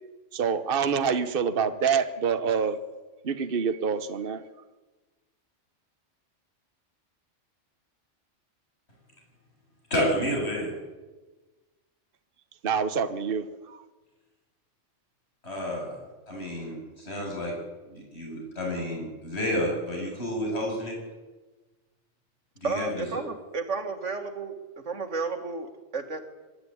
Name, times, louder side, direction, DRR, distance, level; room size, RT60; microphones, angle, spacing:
voice 1, 0.3-2.8 3.2-4.4 12.6-13.8, right 6 dB, 50° right, 10 dB, 1.2 m, -26 dB
voice 2, 9.9-10.8 15.4-16.0 16.3-17.5 17.9-21.0 22.6-23.1, equal, 60° left, -1 dB, 7.6 m, -30 dB
voice 3, 22.6-24.6 24.8-26.2, right 4 dB, 75° right, 6 dB, 2.4 m, -32 dB
24.5 x 12.0 x 9.9 m, 1.2 s
omnidirectional pair, 1.3 m